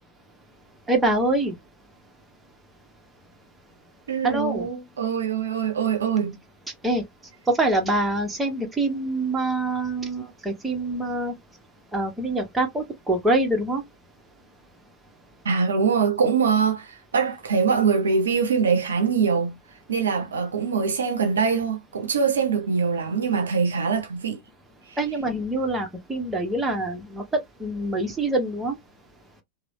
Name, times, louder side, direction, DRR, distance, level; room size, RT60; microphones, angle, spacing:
voice 1, 0.9-1.5 4.2-4.7 6.8-7.0 7.5-11.3 11.9-13.8 25.0-27.2 27.6-28.8, right 2 dB, 10° right, 0.9 m, -25 dB
voice 2, 4.1-6.4 15.4-19.5 19.9-24.4 24.9-25.0, right 6 dB, 70° right, 0.5 m, -23 dB
3.1 x 2.0 x 2.6 m
figure-of-eight pair, 90°, 0 cm